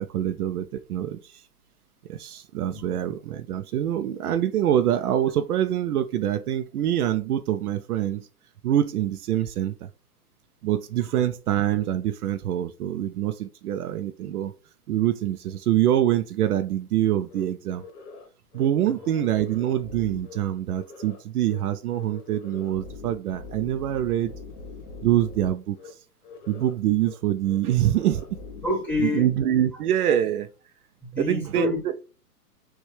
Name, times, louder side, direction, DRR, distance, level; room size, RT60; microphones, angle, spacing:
voice 1, 0.0-1.4 2.1-8.3 8.6-9.9 10.6-14.5 14.9-17.8 18.5-24.3 25.0-25.9 26.5-28.3 29.0-30.5 31.2-31.7, right 11 dB, 70° right, 0.6 m, -25 dB
voice 2, 2.7-3.1 18.9-19.2 28.6-29.3 31.0-32.0, left 2 dB, 5° left, 1.7 m, -29 dB
sound 1, 17.3-17.4 17.8-18.3 18.5-18.7 19.0-20.4 20.7-21.2 21.5-21.6 21.9-25.5 25.8-25.9 26.2-26.7 27.0-27.1 27.4-28.7, left 4 dB, 50° left, 1.6 m, -43 dB
6.3 x 2.4 x 3.3 m
hypercardioid pair, 140°, 47 cm